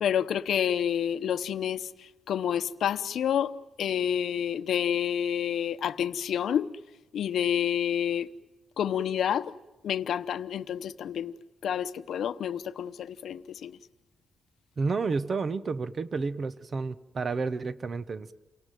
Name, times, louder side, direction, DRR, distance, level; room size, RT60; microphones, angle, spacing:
voice 1, 0.0-1.8 2.3-3.5 3.8-6.7 7.1-8.3 8.8-9.4 9.8-11.3 11.6-12.9 13.2-13.7, left 9 dB, 75° left, 0.9 m, -28 dB
voice 2, 14.8-18.3, right 4 dB, 35° right, 1.0 m, -30 dB
29.0 x 18.5 x 9.2 m
wide cardioid pair, 160°, 0 cm